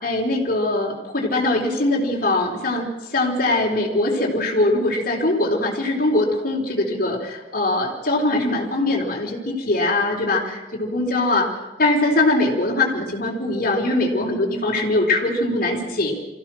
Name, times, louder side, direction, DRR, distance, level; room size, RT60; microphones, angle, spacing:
voice 1, 0.0-11.5 11.8-16.1, left 2 dB, 55° left, -3 dB, 4.0 m, -22 dB
26.0 x 15.5 x 6.4 m, 1.1 s
head